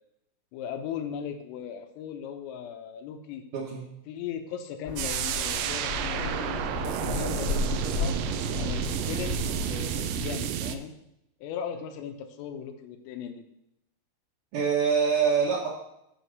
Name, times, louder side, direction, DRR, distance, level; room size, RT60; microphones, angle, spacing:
voice 1, 0.5-3.4 4.1-8.2 8.5-9.4 9.7-10.9 11.4-13.4, left 8 dB, 80° left, 6 dB, 3.5 m, -37 dB
voice 2, 3.5-3.8 14.5-15.7, right 6 dB, 60° right, -6 dB, 2.2 m, -24 dB
sound 1, 4.8-10.4, left 3 dB, 40° left, 2.1 m, -33 dB
sound 2, 5.0-10.8, right 11 dB, 90° right, 2.5 m, -31 dB
11.5 x 4.7 x 6.7 m, 0.81 s
omnidirectional pair, 5.9 m